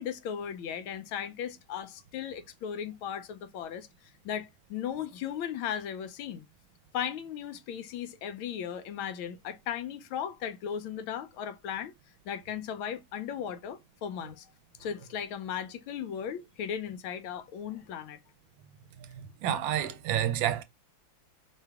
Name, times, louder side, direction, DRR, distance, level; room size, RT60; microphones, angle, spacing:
voice 1, 0.0-3.9 4.2-6.5 6.9-11.9 12.2-14.5 14.8-18.2, left 8 dB, 80° left, 1.5 m, -36 dB
voice 2, 19.2-20.6, right 10 dB, 75° right, 1.2 m, -29 dB
4.7 x 3.2 x 3.4 m
omnidirectional pair, 2.2 m